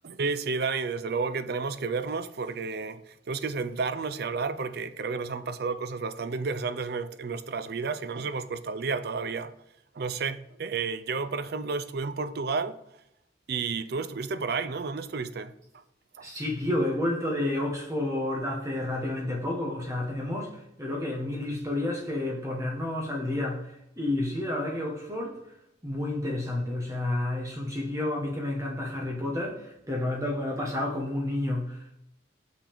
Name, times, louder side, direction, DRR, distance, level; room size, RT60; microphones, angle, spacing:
voice 1, 0.0-9.5 9.9-12.8 13.5-15.5 16.2-16.3, right 4 dB, 55° right, 0.5 m, -31 dB
voice 2, 16.2-25.4 25.8-32.0, left 1 dB, 15° right, 1.2 m, -30 dB
6.6 x 5.8 x 3.5 m
head